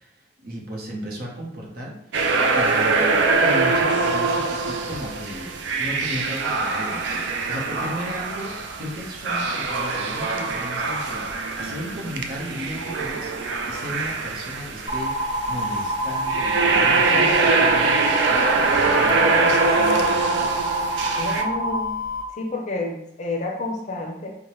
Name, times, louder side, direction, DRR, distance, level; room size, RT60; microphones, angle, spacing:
voice 1, 0.0-2.0 2.5-13.3 13.6-20.5, equal, 55° right, -2 dB, 0.9 m, -35 dB
sound 1, 2.1-21.4, right 3 dB, 70° right, 0.4 m, -23 dB
sound 2, 14.9-22.2, right 2 dB, 15° right, 1.3 m, -26 dB
voice 2, 17.1-17.5 19.2-19.7 21.2-21.9 22.3-24.4, left 2 dB, 40° left, 1 dB, 0.5 m, -30 dB
4.5 x 2.2 x 3.0 m, 0.76 s
head